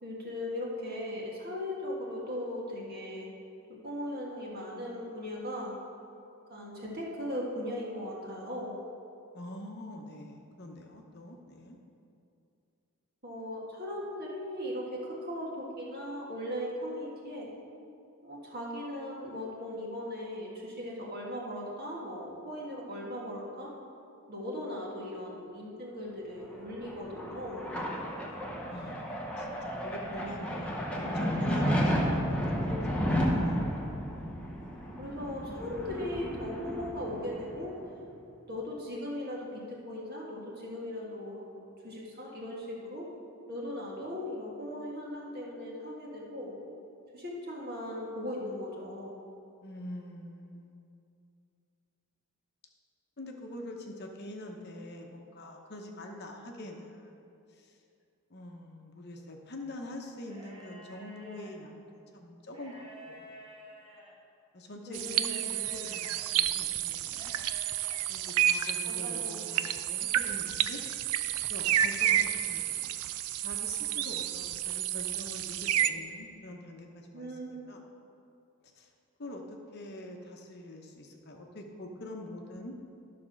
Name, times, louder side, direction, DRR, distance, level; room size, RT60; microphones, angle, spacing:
voice 1, 0.0-3.3 3.8-5.7 6.5-8.7 13.2-17.5 18.2-23.7 24.3-27.7 32.6-32.8 35.0-37.7 38.5-43.1 43.5-46.5 47.1-49.2 64.9-65.4 68.8-69.4 77.1-77.7, left 1 dB, 45° right, -3 dB, 1.7 m, -38 dB
voice 2, 9.3-11.8 28.7-29.5 29.8-33.1 33.4-33.6 49.6-51.1 53.2-57.2 57.5-57.8 58.3-63.3 64.5-67.3 68.1-70.8 71.5-72.9 73.4-77.8 78.8-78.9 79.2-82.7, left 1 dB, 50° left, 2 dB, 0.9 m, -45 dB
sound 1, 26.5-37.8, equal, 5° left, 0.9 m, -32 dB
sound 2, 60.2-61.5 62.4-64.1 65.0-66.2 67.1-68.0, equal, 25° right, 1.3 m, -51 dB
sound 3, 64.9-75.9, right 11 dB, 85° right, 0.4 m, -30 dB
12.0 x 4.3 x 6.3 m, 2.6 s
head